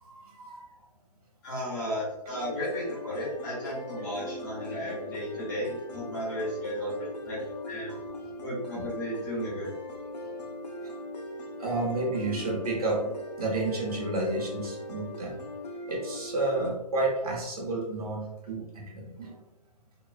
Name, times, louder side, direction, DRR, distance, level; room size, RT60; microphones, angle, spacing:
voice 1, 0.0-0.6 4.0-4.1 5.4-5.5 7.9-8.0 8.7-8.8 11.6-13.1 13.4-15.3 15.8-19.4, right 2 dB, 65° right, -2 dB, 1.0 m, -31 dB
voice 2, 1.4-6.9 7.2-7.9 8.4-9.7, equal, 25° left, -8 dB, 1.2 m, -34 dB
sound 1, 2.3-16.7, left 1 dB, 85° left, 0.6 m, -40 dB
3.0 x 2.3 x 2.3 m, 0.88 s
hypercardioid pair, 170°, 21 cm